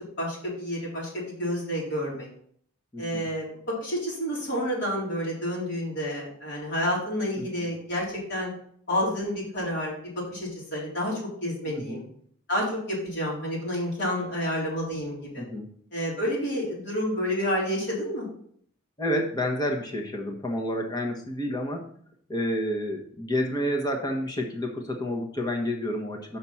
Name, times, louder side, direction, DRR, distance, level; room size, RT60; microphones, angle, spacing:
voice 1, 0.2-2.3 3.0-8.5 8.9-12.0 12.5-15.4 15.9-18.3, equal, 55° left, -5 dB, 3.8 m, -29 dB
voice 2, 2.9-3.3 7.4-7.5 11.7-12.0 15.4-15.7 19.0-21.9 22.3-26.4, equal, 20° left, 1 dB, 1.2 m, -29 dB
6.1 x 5.7 x 5.6 m, 0.63 s
head